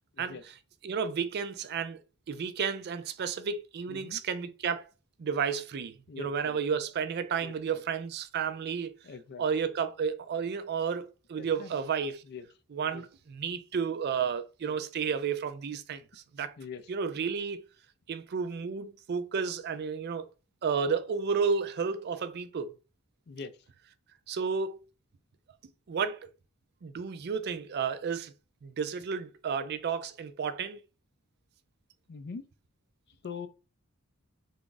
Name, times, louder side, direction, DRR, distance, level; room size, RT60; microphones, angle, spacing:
voice 1, 0.8-2.0 2.3-4.8 5.2-8.9 9.4-12.2 12.7-16.5 16.9-17.6 18.1-20.3 20.6-22.7 24.3-24.8 25.9-26.3 26.8-28.3 28.6-30.8, right 6 dB, 50° right, 0.4 m, -32 dB
voice 2, 3.9-4.2 6.1-6.6 7.4-7.5 9.0-9.5 11.4-11.7 12.3-12.5 12.9-13.1 14.7-14.8 16.6-16.8 23.3-23.5 32.1-32.5 33.2-33.5, left 5 dB, 50° left, 0.4 m, -42 dB
3.4 x 2.5 x 3.8 m
head